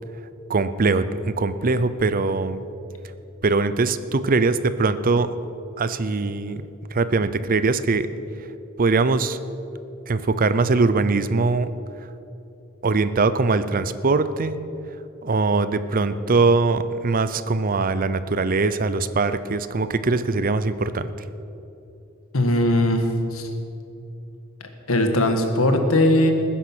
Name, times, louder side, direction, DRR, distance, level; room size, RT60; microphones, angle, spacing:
voice 1, 0.5-2.6 3.4-5.3 5.8-6.6 6.9-8.1 8.8-9.4 10.1-11.7 12.8-14.6 15.2-21.1, right 3 dB, 40° right, 13 dB, 0.6 m, -21 dB
voice 2, 22.3-23.5 24.9-26.3, left 1 dB, 85° left, 5 dB, 1.8 m, -19 dB
20.0 x 10.0 x 6.2 m, 2.8 s
head